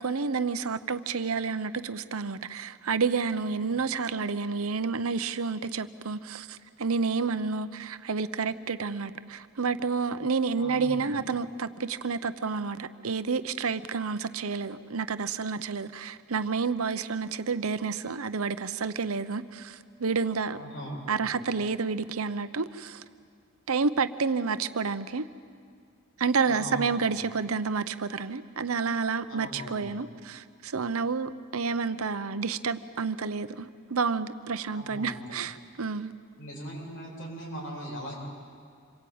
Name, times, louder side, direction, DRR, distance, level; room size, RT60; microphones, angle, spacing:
voice 1, 0.0-20.6 21.1-23.0 23.7-25.3 26.2-36.1, right 5 dB, 70° right, 0.8 m, -30 dB
voice 2, 10.6-11.2 20.5-21.3 26.4-27.1 29.3-29.9 34.7-35.2 36.4-38.1, equal, 60° left, 7.7 m, -40 dB
27.0 x 22.5 x 8.7 m
head